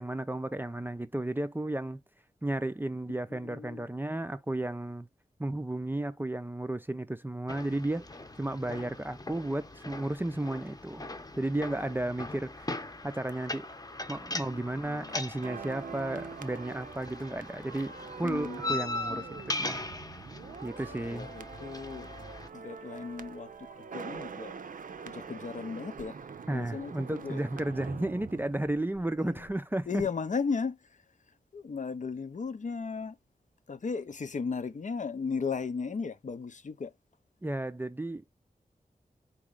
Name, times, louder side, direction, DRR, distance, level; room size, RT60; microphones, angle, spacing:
voice 1, 0.0-2.0 2.4-5.1 5.4-8.1 8.4-11.0 11.4-12.7 13.0-13.7 14.1-17.9 18.2-19.8 20.6-21.3 26.5-30.0 37.4-38.2, right 1 dB, 15° right, 0.4 m, -33 dB
voice 2, 3.3-3.9 14.3-15.2 18.2-18.8 19.1-19.2 20.9-22.1 22.5-23.5 23.8-24.5 25.0-26.2 26.5-27.4 29.2-29.4 29.9-30.8 31.5-33.2 33.7-36.9, left 5 dB, 55° left, 0.6 m, -36 dB
sound 1, 7.5-22.5, left 2 dB, 25° left, 0.8 m, -40 dB
sound 2, 15.4-29.6 29.8-30.0, right 6 dB, 65° right, 0.5 m, -44 dB
4.1 x 3.0 x 3.7 m
wide cardioid pair, 85°, 15 cm